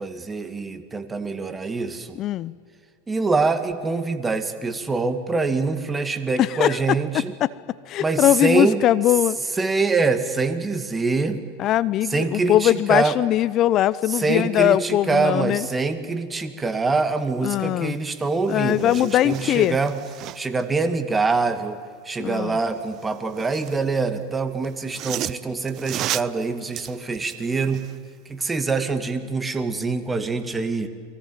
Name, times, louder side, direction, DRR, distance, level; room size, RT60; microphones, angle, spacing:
voice 1, 0.0-2.2 3.1-7.3 8.0-8.8 9.5-11.4 12.1-13.2 14.1-20.0 20.3-21.8 22.0-27.9 28.3-30.9, right 4 dB, 15° right, 9 dB, 2.3 m, -24 dB
voice 2, 2.2-2.5 6.4-6.8 7.4-7.5 7.9-9.4 11.6-15.7 17.4-17.9 18.5-19.8 22.2-22.6, left 13 dB, 45° left, 18 dB, 0.7 m, -20 dB
sound 1, 18.0-18.1 18.4-20.6 22.8-23.8 24.6-28.0 28.4-28.5, right 14 dB, 45° right, 0.6 m, -34 dB
29.0 x 22.5 x 7.5 m, 2.1 s
hypercardioid pair, 90°, 0 cm